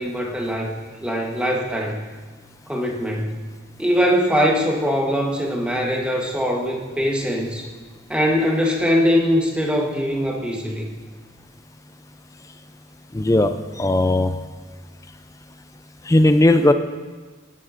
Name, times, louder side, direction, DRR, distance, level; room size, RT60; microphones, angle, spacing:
voice 1, 0.0-2.0 2.7-3.4 3.8-7.7 8.1-10.9, equal, 5° right, -1 dB, 1.2 m, -22 dB
voice 2, 13.1-14.3 16.1-16.7, left 1 dB, 15° left, 9 dB, 0.4 m, -17 dB
16.5 x 11.5 x 2.6 m, 1.4 s
head